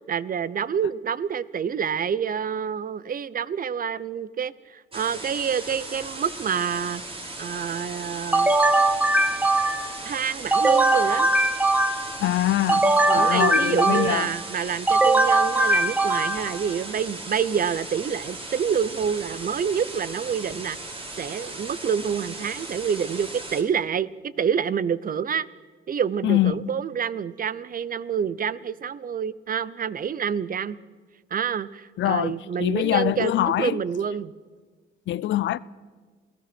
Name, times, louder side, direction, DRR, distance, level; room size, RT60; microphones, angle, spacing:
voice 1, 0.1-7.0 7.4-8.5 10.0-11.3 13.1-20.8 21.2-25.5 25.9-30.8 31.3-34.3, right 7 dB, 45° right, 0.8 m, -27 dB
sound 1, 4.9-23.6, right 2 dB, 25° right, 3.7 m, -37 dB
sound 2, 8.3-10.0 10.5-12.2 12.7-14.3 14.9-16.6, right 2 dB, 10° right, 1.3 m, -20 dB
voice 2, 12.2-14.3 26.2-26.7 32.0-33.8 35.1-35.6, left 14 dB, 70° left, 0.6 m, -24 dB
28.0 x 16.5 x 6.1 m
cardioid pair, 90°, 20 cm